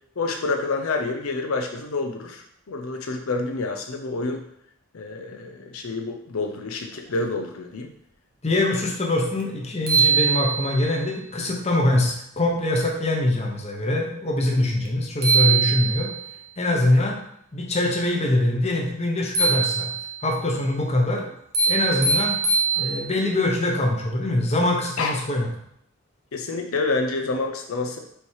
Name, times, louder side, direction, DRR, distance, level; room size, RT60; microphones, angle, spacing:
voice 1, 0.2-4.4 4.9-7.9 21.9-22.1 25.0-25.1 26.3-28.0, left 3 dB, 80° left, 4 dB, 0.6 m, -28 dB
voice 2, 8.4-16.1 16.6-17.2 17.5-19.9 20.2-21.3 21.7-22.4 22.8-25.5, left 1 dB, 30° left, 0 dB, 1.0 m, -23 dB
sound 1, 9.4-9.5 9.9-10.9 14.8-14.9 15.2-16.3 19.3-20.2 21.5-23.3, right 5 dB, 45° right, 1.0 m, -22 dB
6.7 x 3.1 x 4.6 m, 0.72 s
head